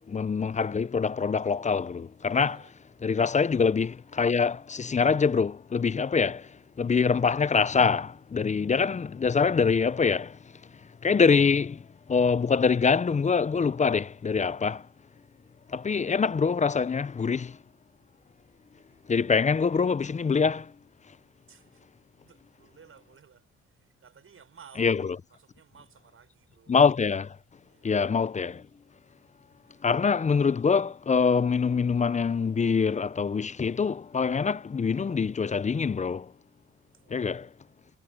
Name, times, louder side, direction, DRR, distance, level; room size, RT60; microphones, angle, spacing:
voice 1, 0.1-2.5 3.0-6.5 6.8-10.4 11.0-11.8 12.1-14.8 15.7-17.6 19.1-20.7 24.8-25.0 26.7-27.3 27.8-28.6 29.8-36.3 37.1-37.5, left 5 dB, 25° left, 0.6 m, -24 dB
voice 2, 2.3-2.7 18.7-19.3 21.5-21.9 22.1-24.9 25.3-26.8 27.6-27.9 29.5-29.9 36.9-37.4, right 6 dB, 45° right, 6.2 m, -56 dB
cardioid pair, 90°, 30 cm